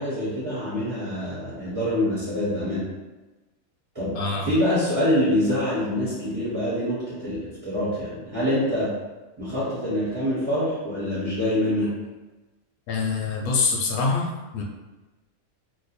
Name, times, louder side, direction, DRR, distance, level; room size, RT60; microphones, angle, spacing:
voice 1, 0.0-2.9 3.9-8.9 9.4-11.9, left 1 dB, 20° right, -10 dB, 0.9 m, -25 dB
voice 2, 4.1-4.5 12.9-14.6, left 4 dB, 85° left, 0 dB, 1.1 m, -25 dB
2.9 x 2.2 x 4.1 m, 1.1 s
omnidirectional pair, 1.5 m